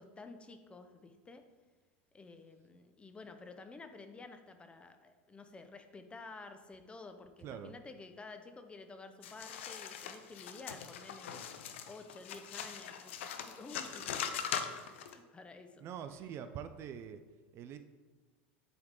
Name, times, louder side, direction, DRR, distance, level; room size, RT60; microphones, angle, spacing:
voice 1, 0.0-1.4 2.1-11.4 11.9-15.9, left 3 dB, 15° left, 8 dB, 0.6 m, -52 dB
voice 2, 7.4-7.8 15.8-17.2 17.5-17.8, right 8 dB, 45° right, 10 dB, 0.4 m, -44 dB
sound 1, 9.2-15.1, left 8 dB, 85° left, 0.5 m, -41 dB
7.8 x 3.5 x 3.7 m, 1.3 s
supercardioid pair, 105°, 6 cm